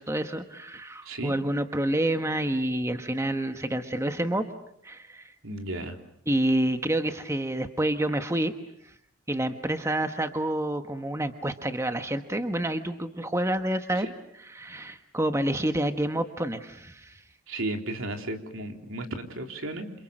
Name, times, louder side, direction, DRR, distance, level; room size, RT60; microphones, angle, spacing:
voice 1, 0.0-4.5 4.8-5.3 6.3-8.5 8.8-8.9 9.3-14.1 14.5-17.2, right 1 dB, 15° right, 7 dB, 1.3 m, -28 dB
voice 2, 5.4-6.0 13.9-14.1 17.5-19.9, right 1 dB, 75° right, 4 dB, 3.5 m, -34 dB
29.0 x 27.5 x 6.5 m, 0.72 s
head